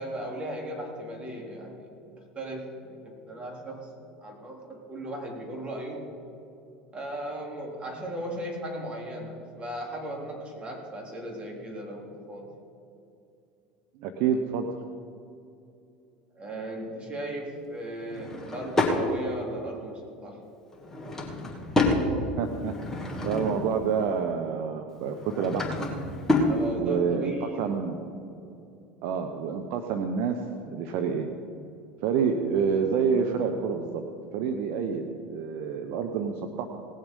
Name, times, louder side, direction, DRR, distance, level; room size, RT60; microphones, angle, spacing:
voice 1, 0.0-1.9 2.4-3.9 4.2-6.1 6.9-12.5 16.4-20.4 26.5-27.7, right 1 dB, 25° right, 0 dB, 3.5 m, -37 dB
voice 2, 14.0-14.7 22.4-25.9 26.7-28.0 29.0-31.3 32.0-34.1 34.3-36.7, right 6 dB, 60° right, 6 dB, 0.9 m, -28 dB
Drawer open or close / Wood, 18.1-19.0 20.7-22.0 22.6-23.7 25.1-26.6, left 2 dB, 10° left, 2.6 m, -28 dB
18.5 x 7.4 x 5.4 m, 2.6 s
hypercardioid pair, 80°, 4 cm